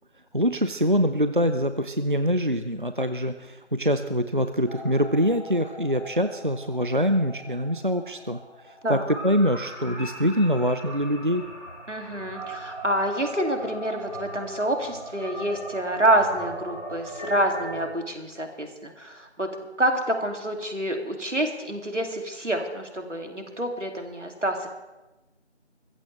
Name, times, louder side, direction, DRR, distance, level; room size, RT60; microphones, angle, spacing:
voice 1, 0.3-8.4 8.9-11.4, equal, 45° right, 9 dB, 0.5 m, -24 dB
sound 1, 4.7-17.9, right 1 dB, 30° left, 4.6 m, -39 dB
voice 2, 11.9-24.7, right 1 dB, 85° right, 4 dB, 2.6 m, -27 dB
22.0 x 15.0 x 3.3 m, 1.1 s
figure-of-eight pair, 175°, 35 cm